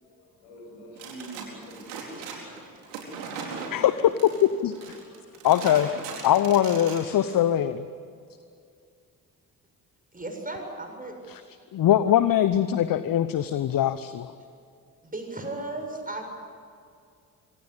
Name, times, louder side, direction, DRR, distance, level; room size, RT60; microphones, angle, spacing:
voice 1, 0.0-4.1, right 1 dB, 70° left, 1 dB, 7.5 m, -47 dB
sound 1, 1.0-7.4, right 5 dB, 70° right, 4.5 m, -39 dB
voice 2, 3.7-5.0 5.4-5.9 6.2-7.9 11.3-11.4 11.7-14.3, left 11 dB, 45° left, 13 dB, 1.1 m, -22 dB
voice 3, 10.1-11.2 15.0-16.2, right 2 dB, 20° right, 3 dB, 7.3 m, -35 dB
25.0 x 25.0 x 8.3 m, 2.4 s
figure-of-eight pair, 45°, 46 cm